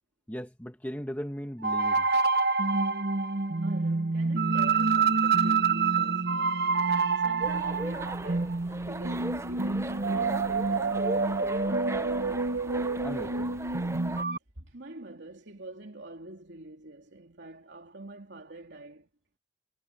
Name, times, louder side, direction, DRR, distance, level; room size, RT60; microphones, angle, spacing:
voice 1, 0.3-2.1 13.0-13.6, equal, 10° left, 1.7 m, -37 dB
sound 1, 1.6-14.4, right 4 dB, 60° right, 0.9 m, -27 dB
voice 2, 3.6-6.7 7.2-10.9 14.6-19.1, right 2 dB, 85° right, 3.0 m, -46 dB
sound 2, 7.4-14.2, right 2 dB, 15° right, 0.6 m, -38 dB
head